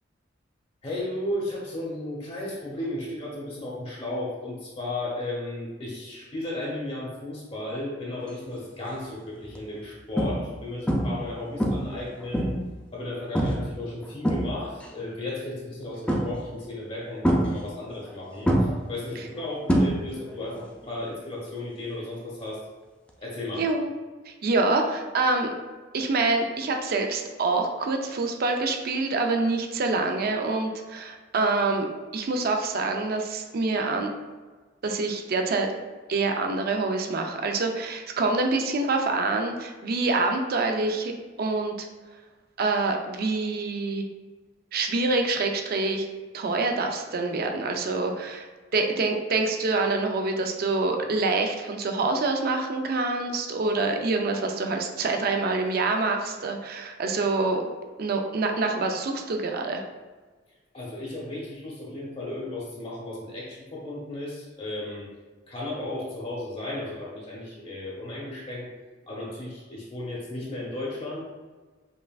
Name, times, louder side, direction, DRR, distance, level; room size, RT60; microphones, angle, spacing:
voice 1, 0.8-12.5 12.9-22.6 23.2-23.7 60.7-65.1 65.5-68.7 69.1-71.2, left 1 dB, 35° left, -4 dB, 0.9 m, -34 dB
sound 1, 8.5-8.8 9.4-9.6 10.2-10.6 10.9-11.3 11.6-12.7 13.3-13.7 14.0-14.9 16.1-16.6 17.2-18.1 18.4-20.3 20.6-21.0 23.1-23.2, equal, 5° left, 0.4 m, -25 dB
voice 2, 23.6-23.9 24.4-25.5 25.9-31.9 32.1-34.1 34.8-35.7 36.1-41.1 41.4-41.9 42.6-44.0 44.7-46.1 46.3-48.5 48.7-57.7 58.0-59.8, right 3 dB, 55° right, 4 dB, 0.4 m, -26 dB
5.3 x 2.5 x 2.3 m, 1.3 s
head